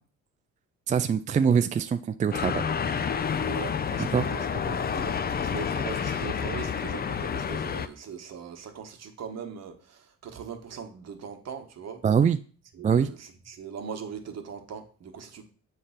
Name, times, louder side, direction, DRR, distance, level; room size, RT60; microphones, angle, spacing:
voice 1, 0.9-2.6 4.1-4.3 12.0-12.4 12.8-13.1, right 7 dB, 25° right, 0.3 m, -23 dB
sound 1, 2.3-7.9, left 7 dB, 30° left, 0.5 m, -29 dB
voice 2, 3.4-12.0 12.7-15.5, right 6 dB, 60° right, 1.3 m, -40 dB
7.4 x 3.3 x 5.7 m
cardioid pair, 90°, 30 cm